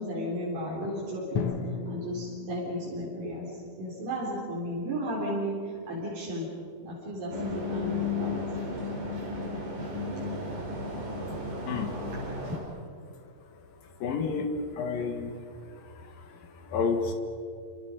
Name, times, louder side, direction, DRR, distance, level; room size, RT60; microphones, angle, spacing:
voice 1, 0.0-1.5 1.9-3.5 3.8-6.5 6.8-8.4, equal, 80° right, -7 dB, 6.0 m, -34 dB
Drum, 1.4-5.4, left 5 dB, 50° left, 2.1 m, -37 dB
sound 1, 7.3-12.6, left 3 dB, 65° right, 6.3 m, -33 dB
voice 2, 14.0-17.1, left 5 dB, 85° left, 5 dB, 3.5 m, -31 dB
29.5 x 27.5 x 5.3 m, 2.3 s
omnidirectional pair, 3.9 m